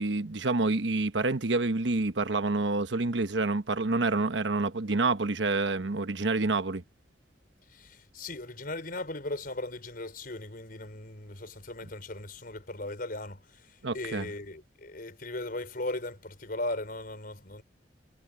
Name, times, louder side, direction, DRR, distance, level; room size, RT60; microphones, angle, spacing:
voice 1, 0.0-6.8 13.8-14.2, right 3 dB, 75° right, 1.1 m, -28 dB
voice 2, 7.7-17.6, left 2 dB, 50° left, 5.2 m, -38 dB
head